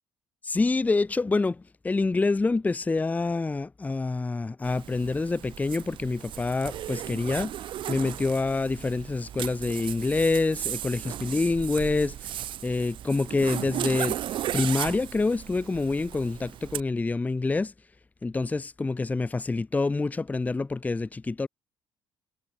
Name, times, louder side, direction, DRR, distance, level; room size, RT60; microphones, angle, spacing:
voice 1, 0.4-7.5 7.9-12.2 12.6-14.2 14.5-17.7 18.2-21.5, left 3 dB, 15° left, 0.6 m, -26 dB
Zipper (clothing), 4.6-16.8, right 12 dB, 60° right, 0.8 m, -36 dB
cardioid pair, 90°, 9 cm